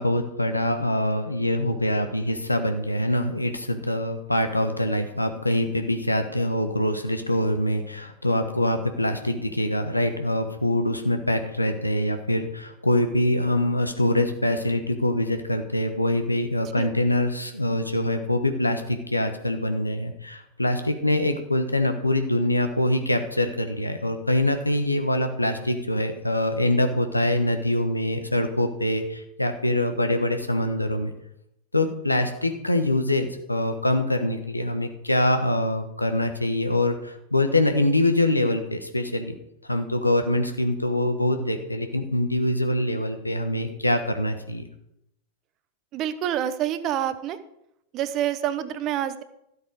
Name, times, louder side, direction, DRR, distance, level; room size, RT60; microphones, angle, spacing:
voice 1, 0.0-31.1 31.7-39.3 39.7-44.6, left 1 dB, 90° left, 8 dB, 1.2 m, -24 dB
voice 2, 45.9-47.4 47.9-49.2, right 11 dB, 35° right, 13 dB, 0.9 m, -27 dB
13.0 x 8.1 x 4.9 m, 0.81 s
figure-of-eight pair, 90°, 0 cm